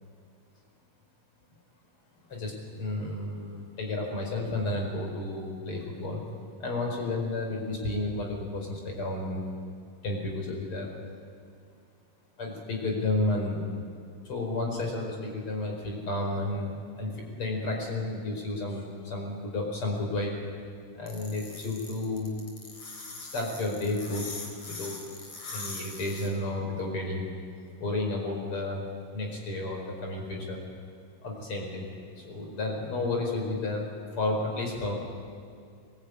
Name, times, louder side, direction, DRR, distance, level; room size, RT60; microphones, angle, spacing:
voice 1, 2.3-6.2 6.6-9.5 10.0-10.9 12.4-13.6 14.3-16.7 17.0-20.3 21.0-22.3 23.3-24.3 24.7-25.0 25.5-27.3 27.8-28.8 29.1-30.6 31.2-31.8 32.2-33.9 34.2-35.0, left 2 dB, 40° left, 1 dB, 5.7 m, -32 dB
sound 1, 21.1-26.3, left 3 dB, 60° left, 5.0 m, -41 dB
22.0 x 21.0 x 9.8 m, 2.4 s
omnidirectional pair, 3.6 m